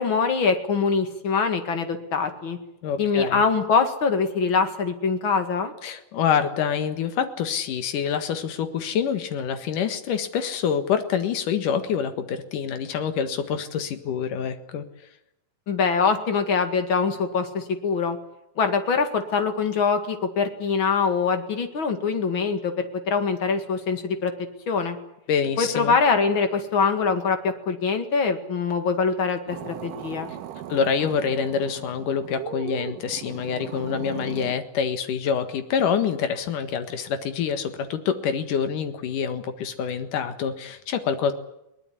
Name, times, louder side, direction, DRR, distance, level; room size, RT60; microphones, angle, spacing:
voice 1, 0.0-2.6 3.0-5.7 15.7-18.2 18.6-24.3 24.7-25.0 25.6-30.3, left 5 dB, 45° left, 7 dB, 2.4 m, -23 dB
voice 2, 2.8-3.4 5.8-14.8 25.3-25.9 30.7-41.3, left 7 dB, 75° left, 9 dB, 3.2 m, -26 dB
sound 1, 29.5-34.6, right 11 dB, 85° right, 2.8 m, -38 dB
21.5 x 19.0 x 10.0 m, 0.85 s
omnidirectional pair, 3.8 m